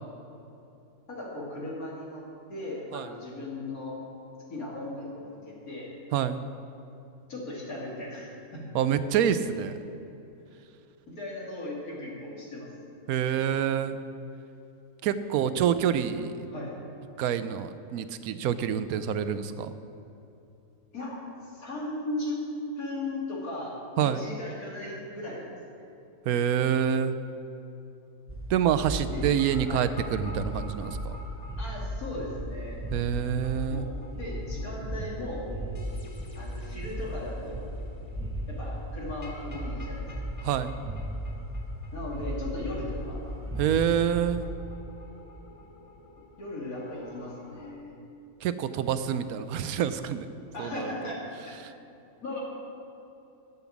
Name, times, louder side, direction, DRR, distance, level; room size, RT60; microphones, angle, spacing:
voice 1, 1.1-4.0 4.5-5.9 7.3-8.7 11.1-12.7 16.5-16.7 20.9-21.2 21.5-22.4 22.8-25.8 29.1-29.3 29.6-29.9 31.6-32.8 33.7-35.4 36.3-37.7 38.5-40.1 41.9-43.2 46.4-47.9 50.5-51.6 52.2-52.4, left 2 dB, 75° left, -5 dB, 2.8 m, -37 dB
voice 2, 6.1-6.4 8.7-9.7 13.1-14.0 15.0-16.3 17.2-19.8 24.0-24.2 26.2-27.1 28.5-31.2 32.9-33.9 40.4-40.8 43.6-44.5 48.4-50.3 50.6-51.1 51.6-51.7, right 9 dB, 80° right, 12 dB, 1.0 m, -27 dB
sound 1, 28.3-44.6, right 1 dB, 20° right, 0.3 m, -36 dB
sound 2, 29.2-47.7, left 2 dB, 35° left, 0.9 m, -51 dB
10.5 x 7.1 x 7.2 m, 2.9 s
omnidirectional pair, 1.5 m